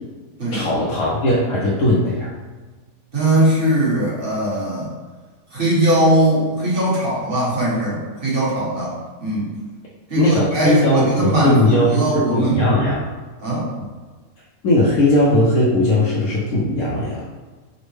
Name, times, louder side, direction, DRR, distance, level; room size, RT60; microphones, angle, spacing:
voice 1, 0.5-2.3 10.2-13.0 14.6-17.2, left 1 dB, 70° left, -7 dB, 1.1 m, -18 dB
voice 2, 3.1-4.9 5.5-9.5 10.1-12.8 13.4-13.7, right 1 dB, 35° right, -7 dB, 1.3 m, -20 dB
5.2 x 2.1 x 3.1 m, 1.3 s
omnidirectional pair, 1.7 m